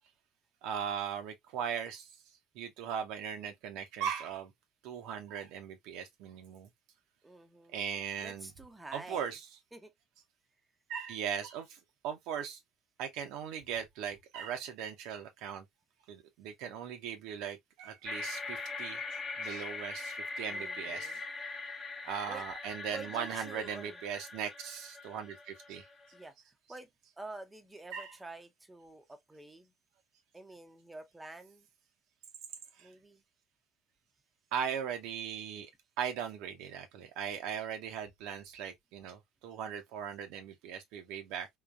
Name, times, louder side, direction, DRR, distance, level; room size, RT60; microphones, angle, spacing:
voice 1, 0.6-2.1 2.5-4.5 4.8-6.7 7.7-8.5 8.9-9.4 10.9-11.8 12.0-12.6 13.0-15.7 16.1-19.0 19.4-21.1 22.0-25.8 27.9-28.1 32.8-32.9 34.5-35.7 36.0-41.5, right 8 dB, 60° right, 0.7 m, -39 dB
voice 2, 7.2-7.9 8.2-9.4 9.7-9.9 20.5-21.2 22.3-22.5 22.9-24.0 26.1-26.9 27.2-29.7 30.3-31.7 32.8-33.2, right 2 dB, 15° right, 0.7 m, -48 dB
sound 1, 18.1-26.3, left 3 dB, 25° left, 0.6 m, -42 dB
3.8 x 2.3 x 2.3 m
figure-of-eight pair, 60°, 0 cm